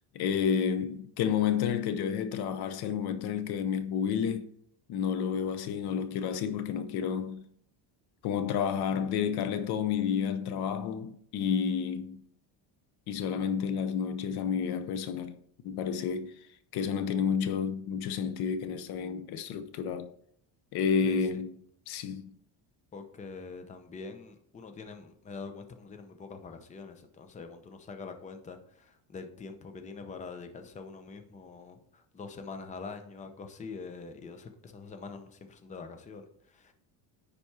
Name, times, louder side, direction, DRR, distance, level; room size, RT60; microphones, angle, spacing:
voice 1, 0.1-4.5 4.9-7.4 8.2-12.2 13.1-16.3 16.7-20.1 20.7-21.5 21.9-22.3, left 7 dB, 60° left, 0.8 m, -30 dB
voice 2, 21.0-21.4 22.9-36.7, left 4 dB, 15° left, 0.7 m, -44 dB
10.0 x 4.3 x 4.7 m
cardioid pair, 155°, 42 cm